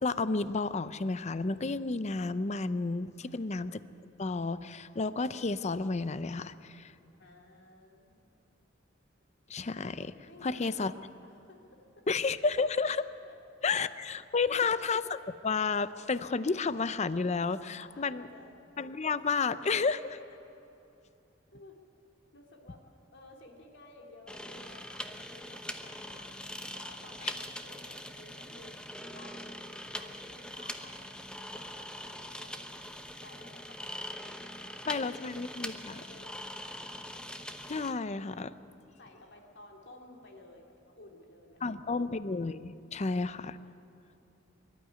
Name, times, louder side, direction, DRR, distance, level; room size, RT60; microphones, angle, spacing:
voice 1, 0.0-3.8 4.2-6.9 9.5-10.1 10.4-10.9 12.1-13.1 13.6-18.3 18.8-20.2 27.2-27.3 34.9-35.9 37.7-38.5 41.6-43.6, left 4 dB, 35° left, 14 dB, 0.6 m, -31 dB
voice 2, 3.2-3.6 7.1-8.2 10.3-12.0 13.2-13.8 14.5-14.8 17.8-18.5 21.5-21.7 22.3-22.8 23.1-26.4 26.7-29.6 29.9-32.7 33.2-34.1 34.4-35.4 35.9-36.9 39.0-42.0, left 2 dB, 65° left, 1 dB, 3.0 m, -55 dB
sound 1, 24.3-37.9, left 1 dB, 5° left, 1.0 m, -42 dB
23.5 x 12.5 x 9.7 m, 2.9 s
head